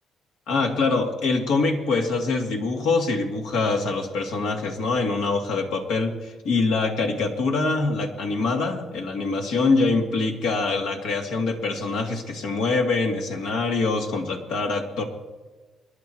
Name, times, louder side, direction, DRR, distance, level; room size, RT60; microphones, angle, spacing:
voice 1, 0.5-15.0, left 3 dB, 90° left, 2 dB, 2.7 m, -24 dB
26.5 x 11.5 x 4.7 m, 1.3 s
cardioid pair, 90°, 0 cm